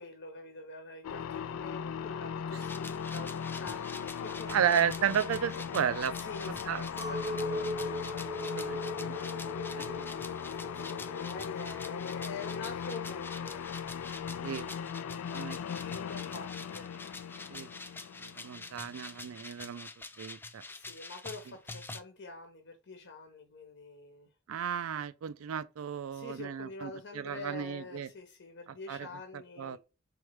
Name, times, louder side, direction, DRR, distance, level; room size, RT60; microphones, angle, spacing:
voice 1, 0.0-4.7 6.2-7.9 10.5-13.6 15.9-16.9 20.7-24.3 26.1-29.8, left 3 dB, 60° left, 1.0 m, -46 dB
sound 1, 1.0-19.4, left 7 dB, 90° left, 0.4 m, -38 dB
sound 2, 2.6-22.0, left 3 dB, 10° left, 0.3 m, -47 dB
voice 2, 4.5-6.1 6.5-6.8 8.4-9.3 9.8-10.0 14.4-14.7 15.1-15.6 17.5-17.7 18.2-19.9 20.2-20.6 24.5-28.1 28.9-29.1 29.6-29.8, right 8 dB, 75° right, 0.4 m, -33 dB
Chink clink, 7.0-12.4, left 1 dB, 20° right, 0.7 m, -39 dB
4.2 x 3.2 x 3.2 m
head